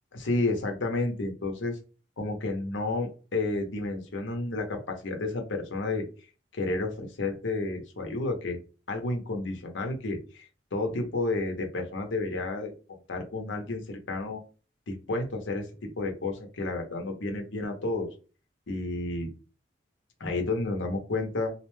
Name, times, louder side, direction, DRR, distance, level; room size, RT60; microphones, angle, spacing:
voice 1, 0.1-1.8 2.2-6.1 6.5-8.6 8.9-12.7 13.1-14.4 14.9-18.1 18.7-19.3 20.2-21.5, left 2 dB, 80° left, 3 dB, 0.7 m, -31 dB
2.4 x 2.1 x 3.1 m, 0.35 s
head